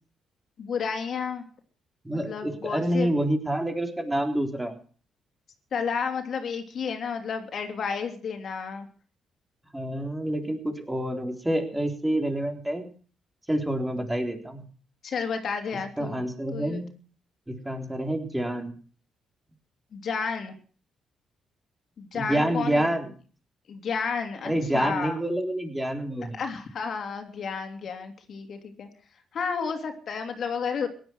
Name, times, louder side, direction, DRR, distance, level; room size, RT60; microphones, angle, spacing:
voice 1, 0.6-1.4 2.1-3.1 5.7-8.9 15.0-16.2 16.5-16.8 19.9-20.5 22.0-22.8 23.7-25.2 26.3-28.9 29.3-30.9, left 5 dB, 55° left, 6 dB, 3.0 m, -31 dB
voice 2, 2.0-4.7 9.7-12.9 13.5-14.7 16.0-17.0 17.5-18.7 22.1-23.1 24.5-26.4, right 1 dB, 10° right, 4 dB, 3.8 m, -28 dB
17.0 x 11.5 x 6.3 m, 0.42 s
cardioid pair, 90°, 0 cm